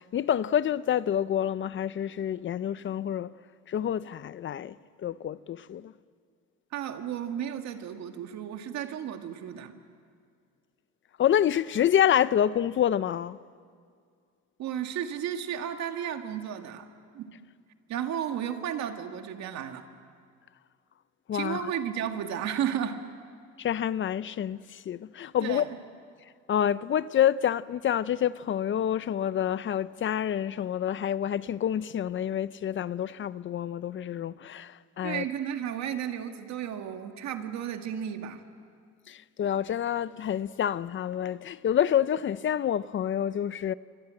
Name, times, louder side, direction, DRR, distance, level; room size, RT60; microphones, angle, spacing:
voice 1, 0.0-3.3 3.7-4.7 5.0-5.9 11.2-13.4 21.3-21.7 23.6-25.6 26.5-35.2 39.1-43.7, left 10 dB, 40° left, 0.6 m, -27 dB
voice 2, 6.7-9.7 14.6-16.9 17.1-17.3 17.9-19.9 21.3-23.0 25.4-25.8 35.0-38.4, right 9 dB, 65° right, 2.0 m, -33 dB
28.5 x 24.5 x 7.8 m
cardioid pair, 105°, 29 cm